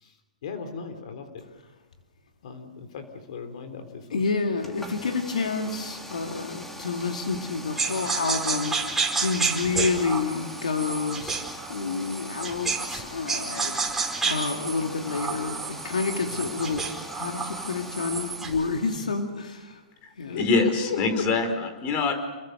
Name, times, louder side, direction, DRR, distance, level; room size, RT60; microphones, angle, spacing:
voice 1, 0.4-1.4 2.4-4.2 16.2-16.5 20.2-21.5, left 6 dB, 65° left, 3.4 m, -36 dB
voice 2, 4.1-8.7 9.2-11.4 11.7-13.8 14.2-19.8 20.2-20.4, left 4 dB, 85° left, 2.4 m, -29 dB
sound 1, 4.6-19.2, equal, 5° left, 2.9 m, -42 dB
sound 2, 7.8-13.0 13.3-18.6, right 4 dB, 10° right, 4.9 m, -30 dB
voice 3, 20.4-22.1, left 3 dB, 40° left, 5.0 m, -24 dB
29.5 x 21.5 x 6.8 m
hypercardioid pair, 115°, 4 cm